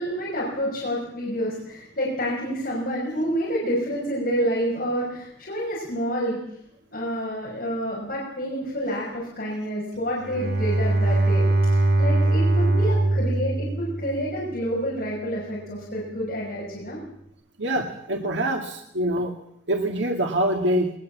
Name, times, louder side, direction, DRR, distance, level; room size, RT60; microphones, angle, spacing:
voice 1, 0.0-6.4 6.9-17.0, equal, 50° left, -5 dB, 6.1 m, -28 dB
Bowed string instrument, 10.2-14.5, right 2 dB, 50° right, 2.7 m, -22 dB
voice 2, 17.6-19.3 19.7-20.9, right 1 dB, 80° right, 3 dB, 2.0 m, -25 dB
21.5 x 20.0 x 7.4 m, 0.75 s
head